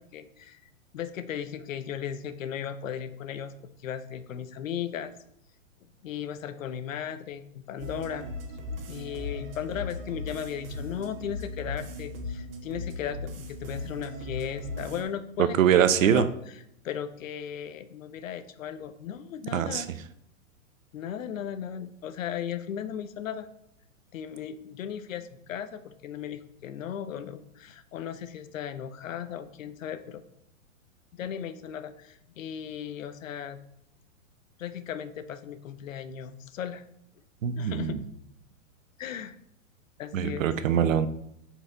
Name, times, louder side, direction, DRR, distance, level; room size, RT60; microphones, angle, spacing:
voice 1, 0.0-3.5 3.8-5.1 5.8-8.3 8.9-15.6 16.0-19.9 20.9-23.5 24.1-30.2 31.1-33.6 34.6-36.8 37.6-38.0 39.0-39.4 40.0-40.4, left 9 dB, 70° left, 12 dB, 0.8 m, -36 dB
sound 1, 7.8-15.0, left 2 dB, 40° right, 1.3 m, -38 dB
voice 2, 15.6-16.2 19.5-19.8 37.4-38.0 40.1-41.1, right 9 dB, 70° right, 12 dB, 0.7 m, -23 dB
7.9 x 4.7 x 3.9 m, 0.75 s
hypercardioid pair, 160°, 41 cm